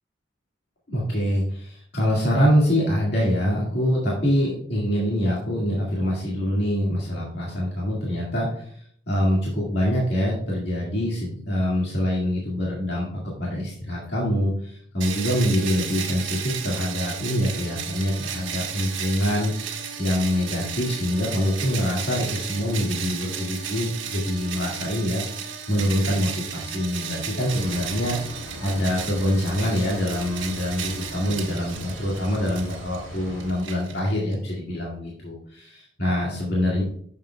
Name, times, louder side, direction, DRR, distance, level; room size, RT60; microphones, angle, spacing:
voice 1, 0.9-28.2 28.6-36.8, equal, 60° left, -5 dB, 2.0 m, -25 dB
sound 1, 15.0-34.4, right 7 dB, 80° right, 1.3 m, -34 dB
sound 2, 27.4-33.5, equal, 80° left, 2.9 m, -40 dB
9.6 x 7.2 x 2.3 m, 0.62 s
head